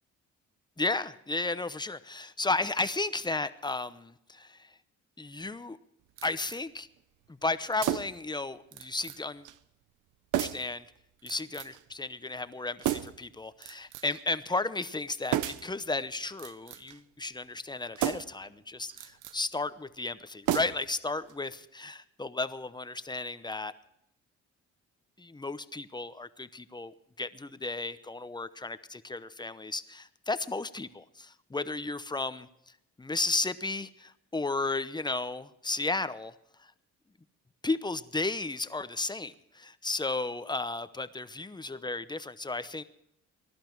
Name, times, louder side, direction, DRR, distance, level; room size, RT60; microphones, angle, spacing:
voice 1, 0.8-4.7 5.2-5.8 6.2-6.9 7.3-9.5 10.3-10.8 11.2-23.7 25.2-31.3 31.5-32.5 33.0-36.3 37.6-42.8, left 3 dB, 15° left, 12 dB, 0.8 m, -34 dB
sound 1, 6.2-6.6 7.8-8.3 8.7-9.2 9.4-9.6 10.3-10.7 11.3-11.8 12.8-13.3 13.6-14.2 15.3-15.7 16.3-17.0 17.9-18.4 18.9-19.4 20.4-21.0 21.3-21.4, right 13 dB, 85° right, 0.8 m, -33 dB
20.5 x 11.5 x 4.6 m, 0.77 s
cardioid pair, 90°, 30 cm